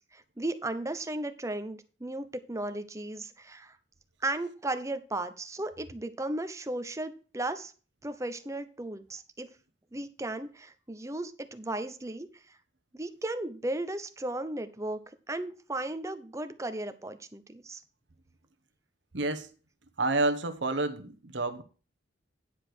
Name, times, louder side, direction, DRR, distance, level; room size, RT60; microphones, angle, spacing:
voice 1, 0.1-3.8 4.2-7.7 8.0-9.5 9.9-12.3 12.9-15.0 15.3-17.8, right 2 dB, 15° right, 0.8 m, -35 dB
voice 2, 19.1-19.5 20.0-21.6, right 2 dB, 80° right, 1.1 m, -29 dB
10.0 x 4.9 x 6.1 m
head